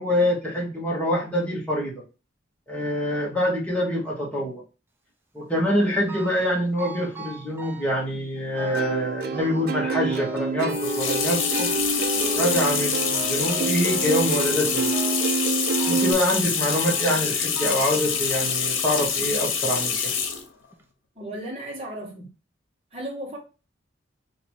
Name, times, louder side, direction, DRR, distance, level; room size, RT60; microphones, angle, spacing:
voice 1, 0.0-2.0 2.7-4.6 5.3-11.7 12.4-15.0 15.9-20.1, equal, 5° left, 1.4 m, -25 dB
sound 1, 6.1-6.5 6.8-8.1 8.6-9.0 9.3-9.8 10.1-11.8 12.2-12.7 13.1-13.8 14.1-14.6 14.9-15.3 15.8-16.2 16.7-17.2 17.6-18.6 19.3-19.4 20.2-20.3 20.7-20.8, right 1 dB, 10° right, 0.6 m, -40 dB
Plucked string instrument, 8.7-16.1, right 4 dB, 50° right, 0.4 m, -28 dB
sound 2, 10.7-20.5, left 6 dB, 90° left, 0.8 m, -26 dB
voice 2, 21.1-22.3 22.9-23.4, right 1 dB, 30° right, 1.6 m, -35 dB
3.0 x 2.9 x 4.4 m
head